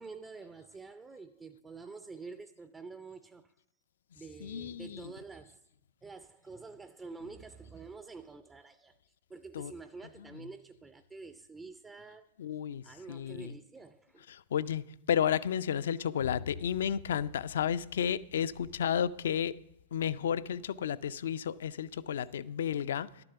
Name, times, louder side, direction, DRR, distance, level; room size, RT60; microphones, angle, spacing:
voice 1, 0.0-3.5 4.1-5.6 6.0-9.0 9.3-12.3 12.8-14.3, right 4 dB, 15° right, 0.4 m, -48 dB
voice 2, 4.4-5.1 9.5-9.7 10.3-10.5 12.4-13.6 14.3-19.5 19.9-23.2, left 9 dB, 70° left, 0.4 m, -32 dB
11.0 x 6.9 x 6.8 m
hypercardioid pair, 100°, 0 cm